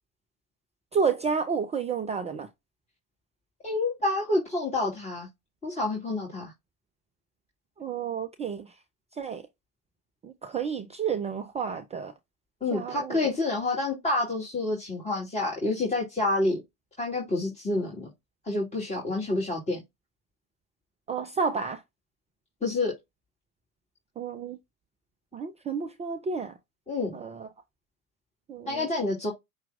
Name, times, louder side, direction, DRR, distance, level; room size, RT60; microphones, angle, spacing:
voice 1, 0.9-2.5 7.8-8.7 9.2-9.4 10.2-12.1 12.7-13.2 21.1-21.8 24.2-24.6 25.3-26.5 27.1-27.5 28.5-28.9, right 6 dB, 15° right, 0.4 m, -30 dB
voice 2, 3.6-5.3 5.6-6.5 12.6-16.6 17.0-18.1 18.5-19.8 22.6-22.9 26.9-27.2 28.7-29.3, left 2 dB, 15° left, 1.9 m, -28 dB
5.7 x 2.3 x 3.5 m
figure-of-eight pair, 70°, 46 cm